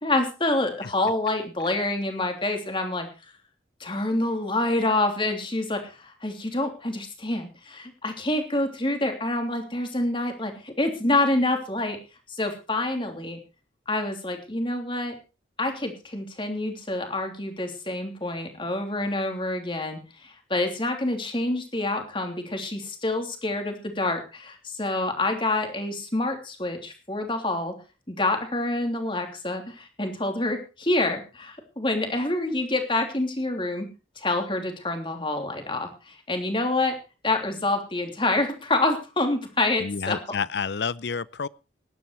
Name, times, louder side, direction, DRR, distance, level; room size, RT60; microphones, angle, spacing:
voice 1, 0.0-3.1 3.8-12.0 12.3-13.4 13.9-15.1 15.6-27.7 28.1-33.9 34.2-36.9 37.2-40.2, left 2 dB, 25° left, 3.2 m, -27 dB
voice 2, 39.8-41.5, left 5 dB, 60° left, 0.6 m, -29 dB
17.0 x 11.5 x 4.7 m
head